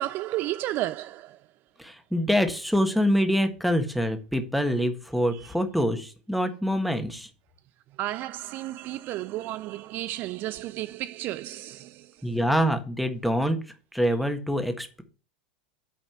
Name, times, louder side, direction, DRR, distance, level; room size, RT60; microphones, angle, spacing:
voice 1, 0.0-1.4 5.3-5.5 8.0-12.2, right 15 dB, 45° right, 0.3 m, -33 dB
voice 2, 1.8-7.3 12.2-13.6 13.9-15.0, equal, ahead, 1.5 m, -25 dB
9.2 x 4.2 x 6.8 m
hypercardioid pair, 100°, 5 cm